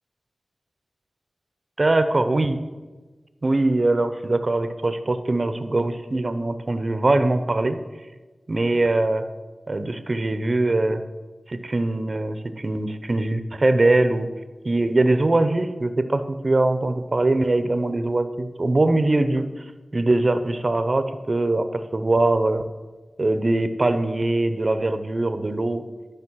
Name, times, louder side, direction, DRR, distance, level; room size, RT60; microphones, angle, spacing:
voice 1, 1.8-2.6 3.4-7.8 8.5-9.3 9.7-11.0 11.5-14.3 14.6-19.5 19.9-22.7 23.2-25.8, right 2 dB, 45° right, 9 dB, 0.7 m, -22 dB
11.0 x 5.1 x 6.3 m, 1.3 s
cardioid pair, 50°, 0 cm